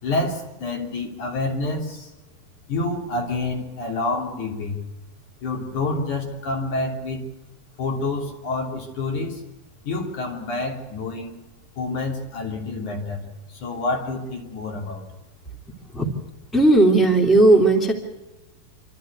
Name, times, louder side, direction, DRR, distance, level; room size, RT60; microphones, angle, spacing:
voice 1, 0.0-2.1 2.7-4.8 5.4-7.2 7.8-9.4 9.8-11.4 11.8-15.1, left 2 dB, 65° left, 0 dB, 4.5 m, -28 dB
voice 2, 16.5-17.9, right 2 dB, ahead, 0 dB, 2.5 m, -15 dB
27.5 x 13.0 x 8.4 m, 1.0 s
omnidirectional pair, 3.7 m